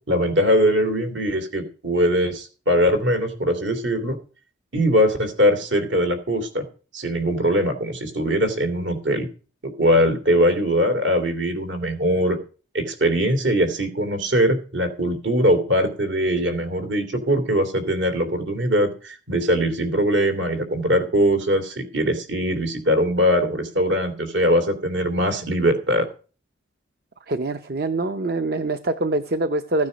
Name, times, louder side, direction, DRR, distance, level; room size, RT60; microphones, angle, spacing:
voice 1, 0.1-4.2 4.7-6.6 6.9-9.3 9.6-12.4 12.7-26.1, equal, 75° right, 3.0 m, -21 dB
voice 2, 27.3-29.9, right 2 dB, 50° right, 0.7 m, -24 dB
15.5 x 9.5 x 5.1 m
head